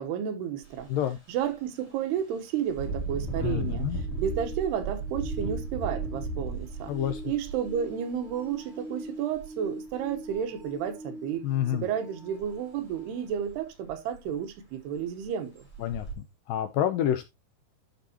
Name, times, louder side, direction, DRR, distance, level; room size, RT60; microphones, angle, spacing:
voice 1, 0.0-0.9 1.3-3.9 4.2-6.9 7.2-11.5 11.7-15.7, right 9 dB, 75° right, 3.1 m, -32 dB
Engine, 0.6-0.8 1.3-1.5 2.7-8.5 9.3-9.5 9.9-10.6 12.4-12.5 12.9-13.0 13.5-13.6 13.9-14.4 15.0-15.1 15.7-16.1, right 3 dB, 20° left, 2.4 m, -35 dB
voice 2, 3.4-4.0 6.9-7.2 11.4-11.9 15.8-16.1 16.5-17.3, left 10 dB, 80° left, 2.0 m, -28 dB
sound 1, 3.5-13.2 15.6-15.7, right 1 dB, 50° right, 6.0 m, -44 dB
12.5 x 5.4 x 2.8 m
omnidirectional pair, 4.8 m